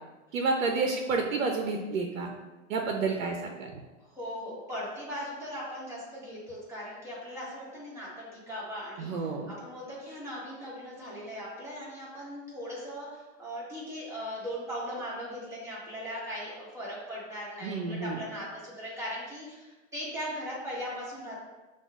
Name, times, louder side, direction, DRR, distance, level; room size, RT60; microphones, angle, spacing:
voice 1, 0.3-2.3 2.7-3.8 9.0-9.5 17.6-18.2, right 4 dB, 85° right, 3 dB, 0.6 m, -30 dB
voice 2, 4.0-21.4, equal, 5° right, -8 dB, 1.4 m, -39 dB
6.9 x 2.4 x 2.3 m, 1.2 s
hypercardioid pair, 120°, 39 cm